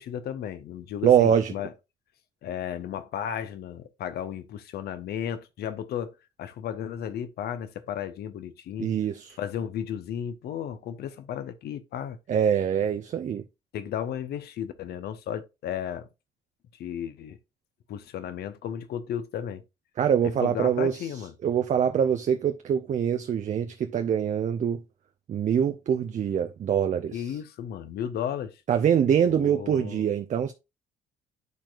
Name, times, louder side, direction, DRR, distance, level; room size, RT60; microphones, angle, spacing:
voice 1, 0.0-1.7 2.4-8.9 9.4-12.2 13.7-16.1 16.8-17.4 17.9-19.6 20.2-21.3 27.1-28.6 29.3-30.0, left 9 dB, 55° left, 0.8 m, -34 dB
voice 2, 1.0-1.5 8.8-9.4 12.3-13.4 20.0-24.8 25.3-27.4 28.7-30.5, right 8 dB, 35° right, 0.6 m, -24 dB
11.0 x 4.4 x 2.4 m
figure-of-eight pair, 45°, 20 cm